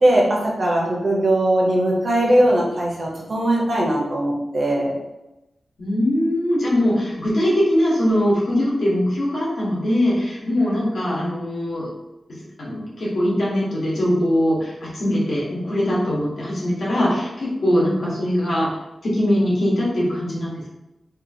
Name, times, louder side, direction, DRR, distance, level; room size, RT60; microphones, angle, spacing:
voice 1, 0.0-4.9, right 1 dB, 45° right, -3 dB, 0.6 m, -19 dB
voice 2, 5.8-11.9 12.6-18.7 19.0-20.7, left 1 dB, 75° left, -6 dB, 1.0 m, -21 dB
2.8 x 2.4 x 2.6 m, 0.96 s
wide cardioid pair, 175°, 0 cm